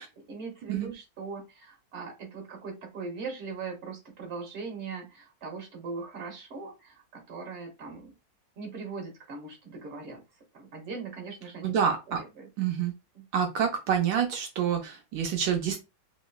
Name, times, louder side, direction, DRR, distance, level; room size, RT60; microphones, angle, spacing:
voice 1, 0.2-8.1 8.6-10.2 10.5-11.8 12.1-12.5 13.1-13.2, right 4 dB, 40° right, 1 dB, 1.2 m, -40 dB
voice 2, 11.6-12.2 12.6-12.9 13.3-15.8, right 8 dB, 80° right, 2 dB, 1.3 m, -27 dB
3.1 x 3.0 x 2.3 m, 0.26 s
omnidirectional pair, 2.1 m